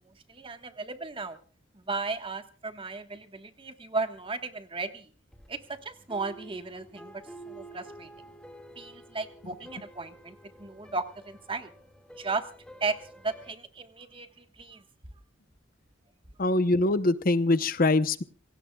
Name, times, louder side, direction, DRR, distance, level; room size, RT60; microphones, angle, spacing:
voice 1, 0.1-1.4 1.9-5.1 5.5-7.1 7.5-8.1 8.8-11.7 12.2-12.5 12.8-14.8, right 3 dB, 30° right, 8 dB, 1.4 m, -35 dB
sound 1, 5.3-13.5, right 1 dB, 5° left, 2.0 m, -50 dB
voice 2, 16.4-18.2, left 2 dB, 50° left, 13 dB, 0.9 m, -23 dB
28.0 x 17.5 x 2.3 m, 0.39 s
head